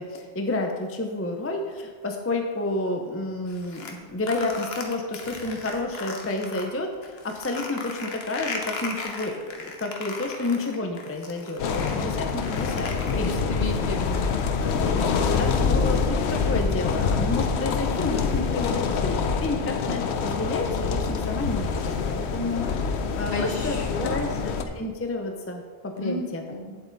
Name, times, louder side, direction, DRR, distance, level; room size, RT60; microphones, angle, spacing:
voice 1, 0.0-13.6 14.6-22.7 23.2-24.3 24.7-26.4, left 2 dB, 15° left, 3 dB, 0.6 m, -30 dB
sound 1, 3.5-6.7 7.0-13.7, left 3 dB, 70° left, 1.3 m, -37 dB
sound 2, 11.6-24.6, left 5 dB, 85° left, 1.0 m, -26 dB
voice 2, 13.1-14.3 23.3-24.4 26.0-26.8, left 2 dB, 50° left, 2 dB, 1.2 m, -32 dB
8.6 x 7.6 x 4.0 m, 1.5 s
omnidirectional pair, 1.1 m